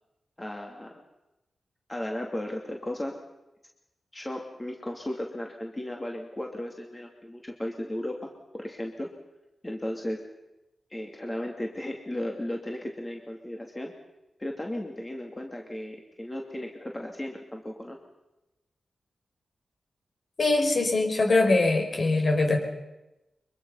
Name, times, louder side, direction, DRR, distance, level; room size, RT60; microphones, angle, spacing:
voice 1, 0.4-1.0 1.9-3.2 4.1-9.1 9.6-10.3 10.9-14.0 14.4-18.0, left 1 dB, 20° left, 1 dB, 2.6 m, -35 dB
voice 2, 20.4-22.6, left 2 dB, 55° left, 2 dB, 5.4 m, -22 dB
24.0 x 23.0 x 5.6 m, 0.95 s
wide cardioid pair, 85°, 0 cm